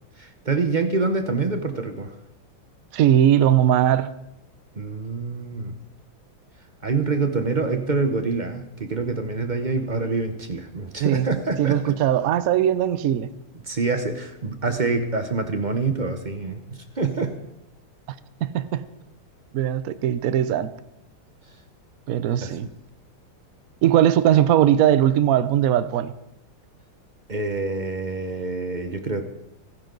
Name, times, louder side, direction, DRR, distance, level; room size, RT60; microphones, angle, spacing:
voice 1, 0.2-2.1 4.8-5.8 6.8-12.0 13.7-17.4 22.4-22.7 27.3-29.2, right 3 dB, 40° right, 0.7 m, -26 dB
voice 2, 2.9-4.1 11.0-11.3 11.6-13.3 18.4-18.9 19.5-20.7 22.1-22.7 23.8-26.1, right 11 dB, 70° right, 0.8 m, -19 dB
28.0 x 10.0 x 3.9 m
omnidirectional pair, 2.3 m